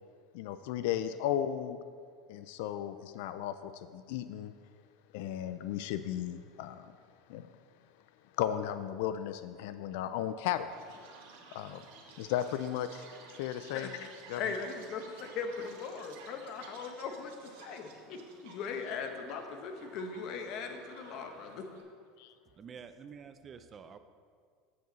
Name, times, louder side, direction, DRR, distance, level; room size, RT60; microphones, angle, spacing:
voice 1, 0.3-1.8 2.3-4.5 5.1-6.9 7.3-7.5 8.4-10.7 11.5-11.8 12.2-13.1 13.4-14.4 22.2-22.3, left 11 dB, 75° left, 11 dB, 0.3 m, -35 dB
Chirp tweet, 10.7-21.8, right 4 dB, 80° right, 1.4 m, -54 dB
voice 2, 14.4-21.6, left 5 dB, 50° left, 6 dB, 0.9 m, -39 dB
voice 3, 22.6-24.0, right 6 dB, 30° right, 10 dB, 0.4 m, -48 dB
7.7 x 7.7 x 3.9 m, 2.1 s
supercardioid pair, 135°, 0 cm